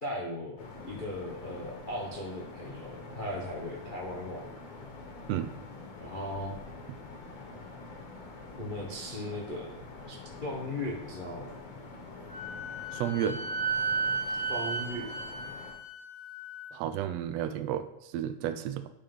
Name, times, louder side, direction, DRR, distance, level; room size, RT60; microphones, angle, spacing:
voice 1, 0.0-4.5 6.0-6.6 8.6-10.1 10.4-11.5 14.5-15.1, left 1 dB, 80° left, -3 dB, 0.4 m, -37 dB
sound 1, 0.6-15.7, left 3 dB, 60° left, 2.5 m, -46 dB
Wind instrument woodwind instrument, 12.3-16.7, right 4 dB, 45° right, 2.2 m, -34 dB
voice 2, 12.9-13.4 16.7-18.9, right 10 dB, 80° right, 11 dB, 1.5 m, -32 dB
9.9 x 5.6 x 5.4 m, 0.84 s
omnidirectional pair, 3.3 m